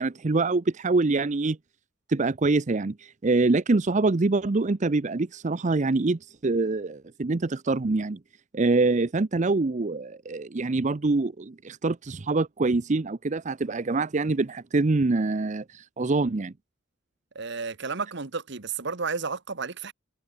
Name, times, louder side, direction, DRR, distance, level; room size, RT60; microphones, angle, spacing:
voice 1, 0.0-1.6 2.1-8.2 8.5-16.5, right 3 dB, 35° right, 0.6 m, -25 dB
voice 2, 17.3-19.9, right 4 dB, 60° right, 1.3 m, -32 dB
head